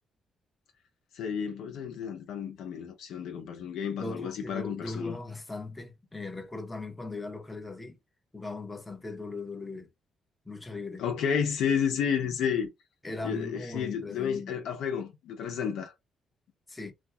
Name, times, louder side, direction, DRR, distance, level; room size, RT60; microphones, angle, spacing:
voice 1, 1.1-5.2 11.0-12.7 13.2-15.9, left 7 dB, 80° left, 0.8 m, -31 dB
voice 2, 4.0-8.0 8.3-9.9 10.4-11.0 13.0-14.6 16.7-16.9, left 3 dB, 15° left, 0.8 m, -39 dB
2.5 x 2.2 x 3.6 m
cardioid pair, 90°, 0 cm